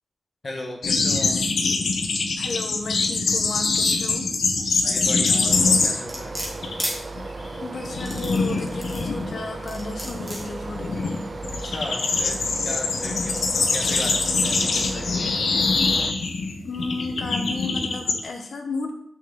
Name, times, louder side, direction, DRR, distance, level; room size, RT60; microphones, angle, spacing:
voice 1, 0.4-1.4 4.8-6.4 11.6-15.3, left 1 dB, 35° left, -1 dB, 1.7 m, -36 dB
sound 1, 0.8-6.2 6.5-6.8 7.2-18.2, left 4 dB, 85° left, 1.1 m, -24 dB
voice 2, 2.4-4.3 7.6-11.0 16.6-18.9, left 3 dB, 65° left, 4 dB, 1.4 m, -33 dB
sound 2, 5.5-16.1, right 3 dB, 40° right, 0.6 m, -36 dB
sound 3, 6.1-7.0 7.9-9.1 9.7-10.4 11.1-11.2, equal, 10° right, 2.5 m, -32 dB
6.4 x 5.9 x 6.9 m, 0.74 s
wide cardioid pair, 130°, 0 cm